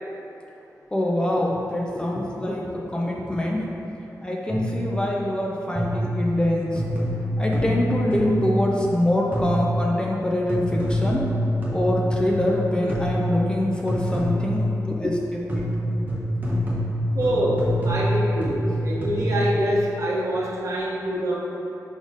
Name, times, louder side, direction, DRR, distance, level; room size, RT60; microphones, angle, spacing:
voice 1, 0.9-3.7 4.2-6.8 7.4-11.3 11.7-15.9, left 1 dB, 15° left, -2 dB, 0.5 m, -24 dB
sound 1, 4.5-4.9 5.8-6.2 6.8-8.6 9.3-9.8 10.5-12.6 12.9-13.4 13.9-14.7 15.5-19.5, equal, 25° right, 0.9 m, -26 dB
voice 2, 17.1-21.3, right 1 dB, 55° right, -4 dB, 0.9 m, -25 dB
5.2 x 4.2 x 4.9 m, 2.8 s
wide cardioid pair, 180°, 6 cm